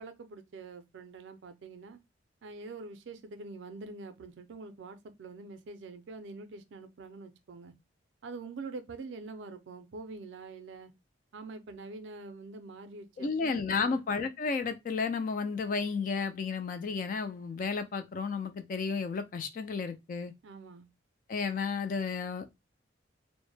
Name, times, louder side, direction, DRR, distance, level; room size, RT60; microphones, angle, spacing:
voice 1, 0.0-2.0 2.4-7.7 8.2-10.9 11.3-14.0 20.4-20.9, right 3 dB, 70° right, 0.4 m, -45 dB
voice 2, 13.2-20.3 21.3-22.6, left 5 dB, 45° left, 0.3 m, -32 dB
2.1 x 2.0 x 3.1 m
head